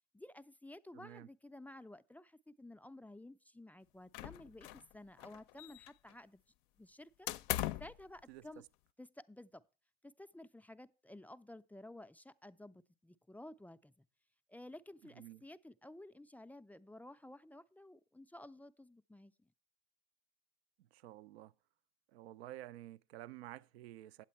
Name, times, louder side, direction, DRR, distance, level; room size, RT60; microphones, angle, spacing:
voice 1, 0.1-6.4 6.8-7.3 7.8-8.6 9.0-9.6 10.0-14.1 14.5-19.5, left 1 dB, 5° left, 0.3 m, -54 dB
voice 2, 0.9-1.3 8.3-8.4 15.2-15.4 20.9-21.5 22.1-24.2, right 14 dB, 80° right, 0.5 m, -51 dB
sound 1, 4.1-4.9 5.2-6.1 7.3-8.0, left 15 dB, 60° left, 0.5 m, -40 dB
8.6 x 8.2 x 4.3 m
hypercardioid pair, 80°, 31 cm